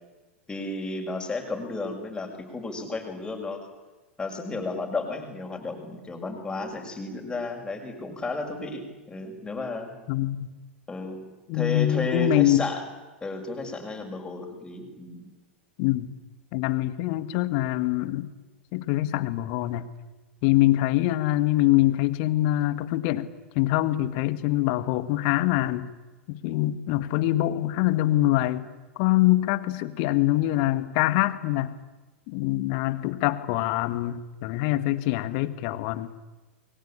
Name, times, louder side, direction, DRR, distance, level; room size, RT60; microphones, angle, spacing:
voice 1, 0.5-3.7 4.2-9.9 10.9-11.2 11.5-12.8 13.2-15.3, left 2 dB, 10° left, 2 dB, 6.4 m, -33 dB
voice 2, 10.1-10.5 11.5-12.6 15.8-16.1 16.5-18.3 18.7-19.9 20.4-23.3 23.6-25.9 26.3-28.7 29.0-31.8 32.3-36.1, left 15 dB, 45° left, 13 dB, 1.8 m, -24 dB
28.5 x 22.0 x 8.8 m, 1.2 s
figure-of-eight pair, 90°, 7 cm